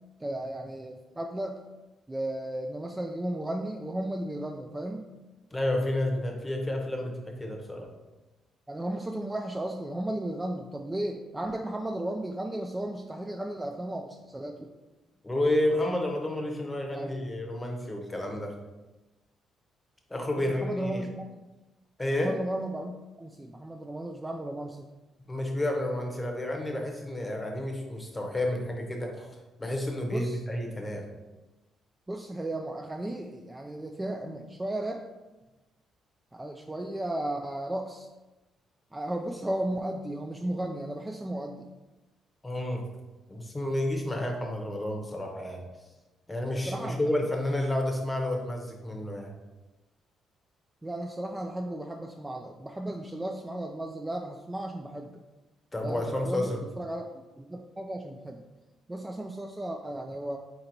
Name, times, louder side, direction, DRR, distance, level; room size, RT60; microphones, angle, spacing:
voice 1, 0.2-1.6 2.1-5.1 8.7-14.7 16.9-17.1 20.6-21.2 22.2-24.9 30.1-30.4 32.1-35.0 36.3-38.1 38.9-41.7 46.7-47.0 50.8-55.2 55.8-57.0 57.4-58.4 58.9-60.4, right 1 dB, 15° right, 2 dB, 0.3 m, -34 dB
voice 2, 5.5-7.9 15.2-18.6 20.1-21.0 22.0-22.4 25.3-29.3 29.6-31.1 42.4-42.9 43.3-45.6 46.3-49.3 55.7-56.6, left 1 dB, 15° left, 2 dB, 0.8 m, -30 dB
4.1 x 2.9 x 3.9 m, 1.1 s
cardioid pair, 90°, 0 cm